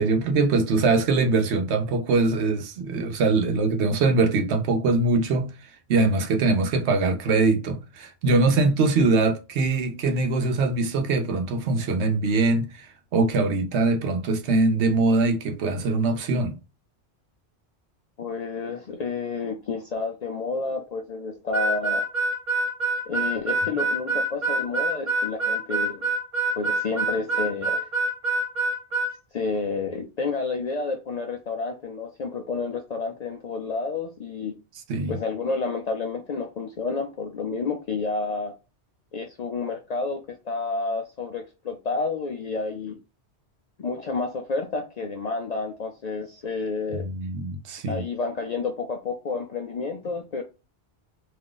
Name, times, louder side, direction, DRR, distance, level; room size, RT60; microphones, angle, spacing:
voice 1, 0.0-5.5 5.9-12.9 13.1-16.6 34.9-35.2 46.9-48.0, right 3 dB, 80° right, 1.0 m, -22 dB
voice 2, 18.2-22.0 23.1-26.1 26.6-27.9 29.3-34.5 35.1-38.5 39.1-43.0 43.8-47.1 47.9-50.4, left 4 dB, 60° left, 0.4 m, -30 dB
Harmonica, 21.5-29.1, right 2 dB, 30° right, 1.3 m, -25 dB
2.6 x 2.4 x 3.7 m
omnidirectional pair, 1.1 m